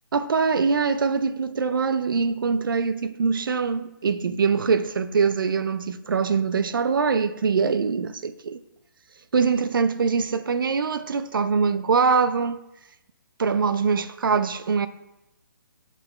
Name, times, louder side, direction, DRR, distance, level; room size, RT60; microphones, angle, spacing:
voice 1, 0.1-8.6 9.3-12.6 13.4-14.9, right 5 dB, 85° right, 0.5 m, -23 dB
5.8 x 5.7 x 4.3 m
hypercardioid pair, 160°, 11 cm